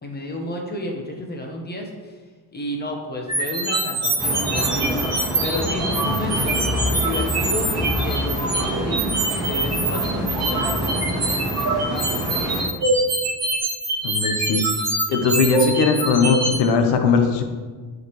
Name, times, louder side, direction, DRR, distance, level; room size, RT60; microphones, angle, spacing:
voice 1, 0.0-1.9 2.5-5.0 5.4-6.6 7.0-9.1 9.4-12.6, left 1 dB, 25° left, 1 dB, 1.2 m, -31 dB
sound 1, 3.3-16.6, right 2 dB, 40° right, 2.1 m, -24 dB
sound 2, 4.2-12.6, right 1 dB, 10° right, 1.8 m, -26 dB
voice 2, 14.0-14.6 15.1-17.4, left 5 dB, 80° left, 5 dB, 1.0 m, -19 dB
7.9 x 5.0 x 3.2 m, 1.4 s
cardioid pair, 110°, 40 cm